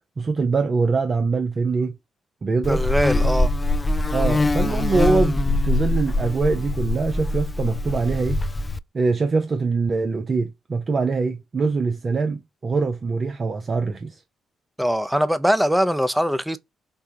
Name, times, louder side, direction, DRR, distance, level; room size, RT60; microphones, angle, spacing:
voice 1, 0.2-2.0 2.4-2.8 4.1-8.4 8.9-14.2, right 4 dB, 45° right, 0.6 m, -23 dB
Buzz, 2.6-8.8, left 2 dB, 30° left, 0.3 m, -23 dB
voice 2, 2.7-3.5 14.8-16.6, equal, 5° right, 0.6 m, -21 dB
5.4 x 2.2 x 2.8 m
figure-of-eight pair, 40°, 0 cm